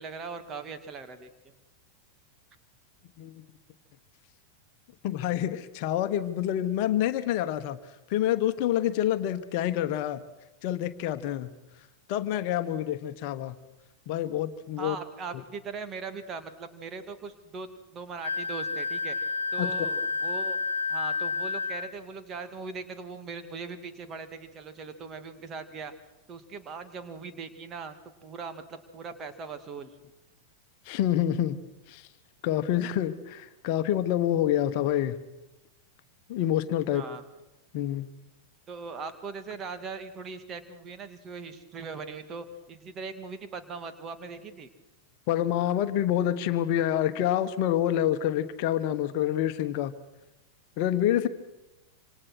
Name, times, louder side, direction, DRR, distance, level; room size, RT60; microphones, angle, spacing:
voice 1, 0.0-1.5 14.8-19.2 19.5-20.6 20.9-25.9 26.3-27.9 28.2-29.9 36.9-37.2 38.7-44.7, right 5 dB, 30° right, 8 dB, 2.4 m, -40 dB
voice 2, 5.0-7.8 8.1-10.2 10.6-11.5 12.1-13.6 14.1-15.0 15.3-15.4 19.6-19.7 30.8-31.6 31.9-32.1 32.4-35.2 36.3-37.1 37.7-38.1 45.3-49.9 50.8-51.3, left 11 dB, 45° left, 11 dB, 1.2 m, -27 dB
Wind instrument woodwind instrument, 18.2-21.9, left 4 dB, 75° left, 0.8 m, -30 dB
27.0 x 26.5 x 6.3 m, 1.0 s
figure-of-eight pair, 90°, 0 cm